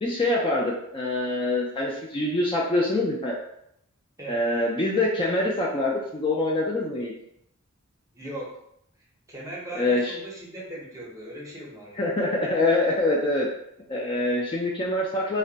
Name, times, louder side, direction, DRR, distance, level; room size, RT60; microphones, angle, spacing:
voice 1, 0.0-3.4 4.3-7.1 9.7-10.2 12.0-13.5 13.9-15.4, left 2 dB, 25° left, -3 dB, 0.3 m, -25 dB
voice 2, 8.1-8.6 9.3-12.0, right 1 dB, 15° right, -4 dB, 0.7 m, -38 dB
2.5 x 2.1 x 3.8 m, 0.76 s
head